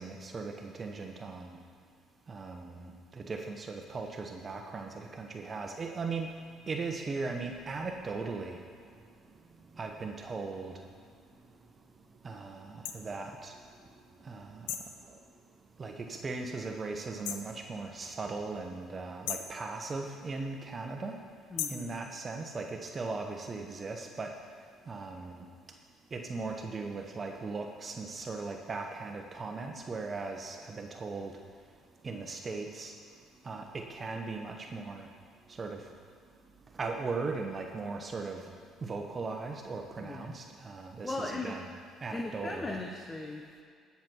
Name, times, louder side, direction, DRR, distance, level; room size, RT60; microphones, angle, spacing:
voice 1, 0.0-1.6 2.3-6.3 6.7-8.6 9.8-10.7 12.2-13.5 14.2-14.7 15.1-15.2 15.8-21.2 21.7-24.3 24.9-25.4 26.1-31.3 32.0-32.9 33.4-35.1 35.6-35.8 36.7-38.4 38.8-41.6 42.0-42.8, right 4 dB, 35° right, 3 dB, 1.2 m, -38 dB
sound 1, 12.8-13.0 14.7-15.0 17.2-17.5 19.3-19.6 21.6-21.9, left 10 dB, 80° left, 0.7 m, -36 dB
voice 2, 21.5-22.0 40.0-40.4 41.0-41.5 42.1-43.6, left 2 dB, 25° left, 1 dB, 1.1 m, -38 dB
17.0 x 7.1 x 4.6 m, 2.1 s
supercardioid pair, 65°, 0 cm